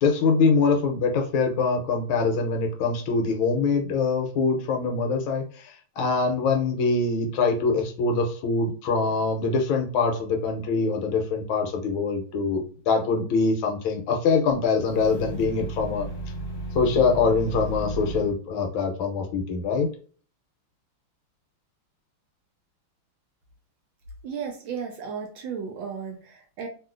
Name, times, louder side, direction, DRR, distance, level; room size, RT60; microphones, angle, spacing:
voice 1, 0.0-16.1 16.7-19.9, left 4 dB, 80° left, 3 dB, 1.4 m, -24 dB
sound 1, 14.7-18.4, right 2 dB, 45° left, 1.0 m, -34 dB
voice 2, 24.2-26.7, right 6 dB, 75° right, 3 dB, 1.1 m, -34 dB
3.1 x 2.7 x 2.4 m, 0.40 s
omnidirectional pair, 2.4 m